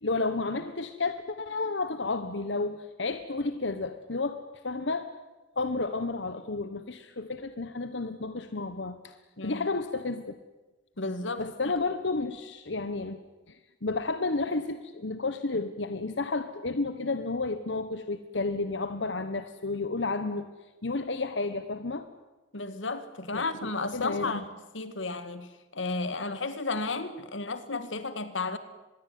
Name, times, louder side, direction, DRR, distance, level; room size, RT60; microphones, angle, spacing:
voice 1, 0.0-5.1 5.5-9.1 9.4-10.4 11.4-13.2 13.5-20.5 20.8-22.1 23.3-24.4, left 3 dB, 70° left, 1.3 m, -31 dB
voice 2, 9.4-9.7 11.0-11.5 22.5-24.4 24.7-25.5 25.7-28.6, left 3 dB, 90° left, 2.1 m, -33 dB
25.0 x 21.5 x 9.4 m
head